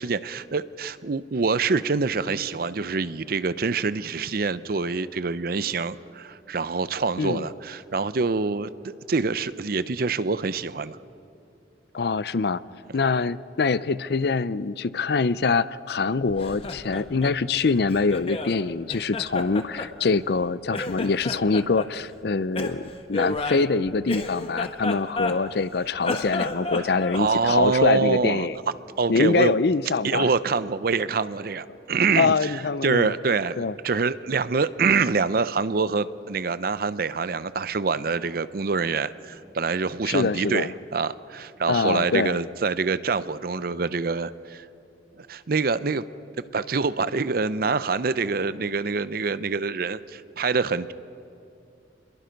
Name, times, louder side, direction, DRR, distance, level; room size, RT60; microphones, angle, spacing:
voice 1, 0.0-11.0 27.1-28.5 29.0-29.5 30.0-33.6 33.8-44.7 45.2-46.0 46.5-50.9, right 4 dB, 55° right, 15 dB, 0.6 m, -25 dB
voice 2, 11.9-12.6 12.9-28.6 29.1-30.3 32.2-33.1 33.6-33.7 40.1-40.7 41.7-42.4, left 4 dB, 65° left, 17 dB, 0.5 m, -24 dB
Laughter, 16.3-18.6 18.9-20.4 20.7-21.9 22.5-25.6 26.0-27.9, left 2 dB, 35° left, 1.3 m, -32 dB
28.0 x 22.0 x 5.2 m, 2.6 s
head